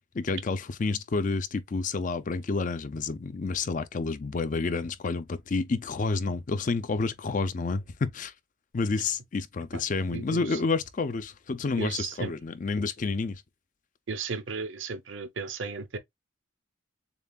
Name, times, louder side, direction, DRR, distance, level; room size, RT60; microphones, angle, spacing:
voice 1, 0.1-8.3 8.7-13.4, left 4 dB, 40° left, 0.4 m, -29 dB
voice 2, 10.1-10.6 11.8-12.3 14.1-16.0, right 4 dB, 65° right, 0.7 m, -35 dB
6.8 x 2.4 x 2.3 m
head